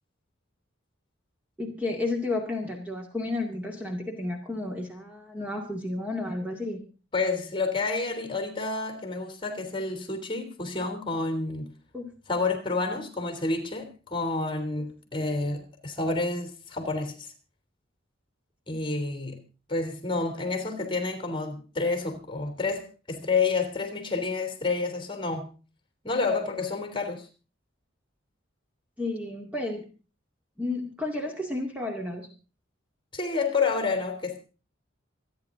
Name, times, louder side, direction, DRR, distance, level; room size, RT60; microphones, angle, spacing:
voice 1, 1.6-6.8 11.9-12.1 14.8-14.9 18.7-18.8 29.0-29.9 30.6-32.3, left 2 dB, 10° right, 2.1 m, -32 dB
voice 2, 7.1-11.7 12.3-17.3 18.7-19.4 19.7-25.5 26.0-27.3 33.1-34.4, left 3 dB, 25° left, 3.1 m, -29 dB
27.0 x 9.9 x 3.8 m
head